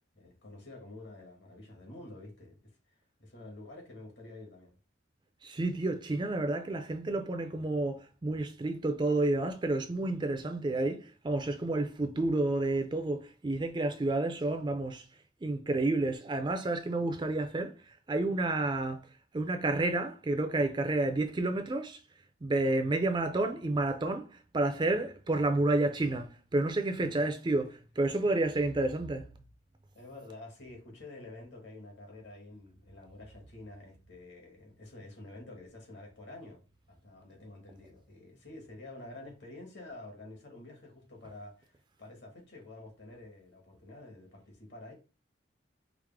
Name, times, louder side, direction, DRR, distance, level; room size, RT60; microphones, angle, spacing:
voice 1, 0.1-4.7 27.0-27.3 29.9-36.6 36.9-44.9, left 2 dB, 70° left, 1.6 m, -49 dB
voice 2, 5.4-15.1 15.4-19.0 19.3-22.0 22.4-29.3, right 2 dB, 25° right, 0.4 m, -30 dB
4.6 x 2.0 x 3.5 m
head